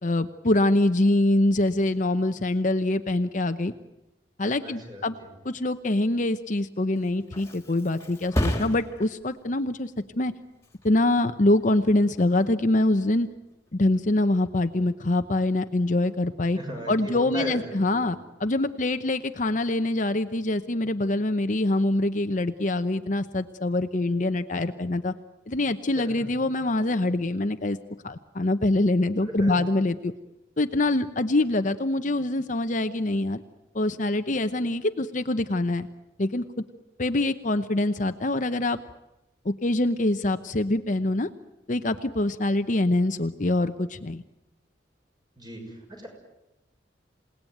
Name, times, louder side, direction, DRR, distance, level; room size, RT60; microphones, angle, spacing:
voice 1, 0.0-3.7 4.4-5.1 5.4-10.3 10.8-13.3 13.7-16.6 16.9-25.1 25.5-27.8 28.0-30.1 30.6-33.4 33.7-35.9 36.2-36.4 37.0-38.8 39.4-41.3 41.7-44.2, left 2 dB, 45° left, 9 dB, 0.9 m, -24 dB
voice 2, 4.6-5.3 16.5-18.1 26.0-26.3 26.7-26.9 29.3-29.6 45.4-46.1, right 1 dB, 25° right, 2 dB, 6.8 m, -37 dB
Thump thud, 6.8-14.2 14.6-15.1, equal, 15° left, 2.9 m, -35 dB
28.0 x 18.5 x 9.2 m, 0.94 s
head